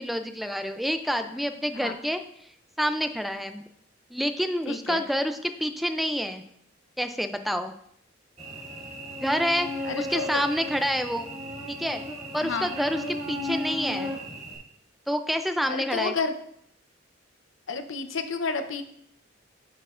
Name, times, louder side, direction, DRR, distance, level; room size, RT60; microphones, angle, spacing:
voice 1, 0.0-2.2 2.8-3.6 4.1-6.4 7.0-7.7 9.2-9.7 10.0-11.3 11.7-12.0 12.3-14.1 15.1-16.1, equal, ahead, 8 dB, 0.3 m, -28 dB
voice 2, 4.7-5.0 9.8-10.4 12.4-12.7 15.7-16.3 17.7-18.8, left 4 dB, 75° left, 8 dB, 0.7 m, -30 dB
Cricket / Buzz, 8.4-14.6, left 1 dB, 35° right, 2.5 m, -35 dB
11.0 x 6.3 x 2.5 m, 0.71 s
head